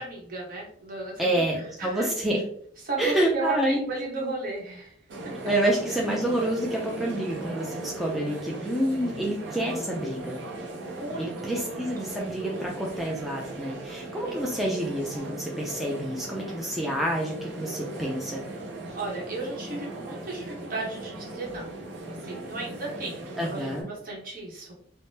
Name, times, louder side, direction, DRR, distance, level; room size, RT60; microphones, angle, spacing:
voice 1, 0.0-2.1 2.8-5.0 5.2-5.3 10.9-11.7 14.2-14.5 18.9-21.7 22.1-24.7, right 2 dB, 50° right, -2 dB, 1.0 m, -35 dB
voice 2, 1.2-2.4 3.0-3.9 5.4-10.4 11.2-18.4 23.4-23.9, right 1 dB, ahead, -2 dB, 0.3 m, -28 dB
sound 1, 5.1-23.8, right 2 dB, 70° right, 0.6 m, -38 dB
3.4 x 2.1 x 2.7 m, 0.62 s
head